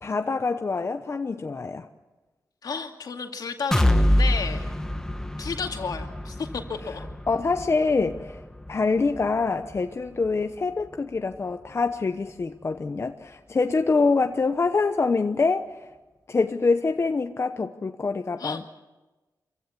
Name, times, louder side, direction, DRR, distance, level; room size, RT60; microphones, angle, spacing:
voice 1, 0.0-1.9 7.3-8.4 8.7-15.9 16.3-18.7, left 4 dB, 40° left, 6 dB, 0.9 m, -25 dB
voice 2, 2.6-4.6 5.4-7.0 18.4-18.7, left 5 dB, 70° left, 4 dB, 2.4 m, -32 dB
sound 1, 3.7-11.5 11.9-12.0 12.4-12.5, left 1 dB, 10° left, 1.3 m, -27 dB
26.0 x 16.0 x 8.5 m, 1.2 s
wide cardioid pair, 95°, 7 cm